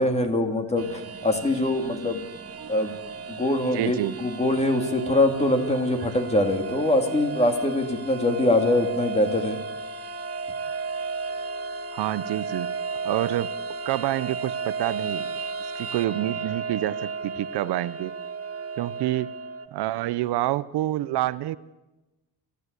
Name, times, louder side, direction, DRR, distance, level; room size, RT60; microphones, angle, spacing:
voice 1, 0.0-2.2 2.7-3.0 3.3-9.6, left 1 dB, 15° left, 5 dB, 2.6 m, -23 dB
sound 1, 0.8-19.7, right 4 dB, 35° right, 1.4 m, -34 dB
voice 2, 3.7-4.2 11.9-12.8 13.0-13.5 13.8-15.4 15.7-18.1 18.8-19.3 19.7-21.6, right 15 dB, 80° right, 17 dB, 0.7 m, -27 dB
29.0 x 13.5 x 8.2 m, 1.1 s
cardioid pair, 130°, 39 cm